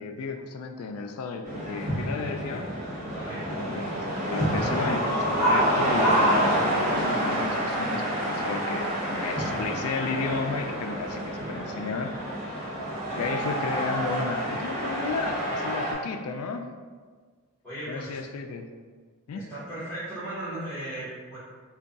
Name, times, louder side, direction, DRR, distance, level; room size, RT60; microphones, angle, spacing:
voice 1, 0.0-2.7 3.5-12.1 12.6-12.7 13.2-16.7 17.9-18.7 19.3-19.4, left 4 dB, 80° left, 5 dB, 0.3 m, -33 dB
sound 1, 1.4-15.9, equal, 35° right, 1.5 m, -27 dB
voice 2, 3.1-3.5 12.9-13.4 17.6-18.2 19.3-21.4, right 1 dB, 10° left, -14 dB, 1.2 m, -37 dB
3.4 x 2.3 x 3.8 m, 1.5 s
head